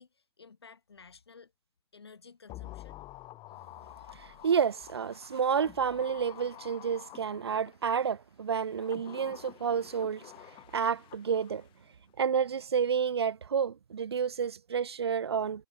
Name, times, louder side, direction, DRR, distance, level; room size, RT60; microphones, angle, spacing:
voice 1, 0.0-1.5 1.9-3.0, left 5 dB, 90° left, 4.0 m, -54 dB
sound 1, 2.5-8.0 8.6-11.8 12.1-12.2, left 17 dB, 40° left, 2.4 m, -49 dB
voice 2, 4.1-10.3 10.7-11.6 12.2-15.7, right 7 dB, 90° right, 0.6 m, -30 dB
hypercardioid pair, 100°, 13 cm